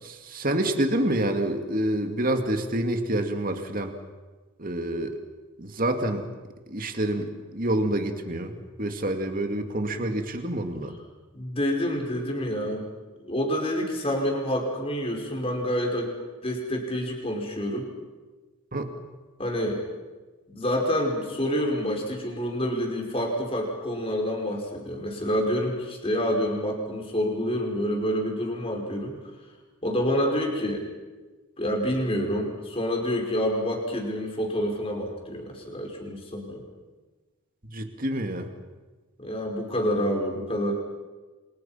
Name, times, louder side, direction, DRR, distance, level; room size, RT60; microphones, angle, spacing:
voice 1, 0.0-3.9 4.6-5.2 5.6-6.3 6.7-10.9 18.7-18.9 37.7-38.5, right 1 dB, 40° right, 5 dB, 2.4 m, -27 dB
voice 2, 11.3-12.8 13.2-16.1 16.4-17.9 19.4-19.8 20.5-29.2 29.8-30.9 31.6-36.6 39.2-40.7, equal, 25° left, 1 dB, 5.1 m, -28 dB
29.0 x 26.0 x 5.9 m, 1.3 s
head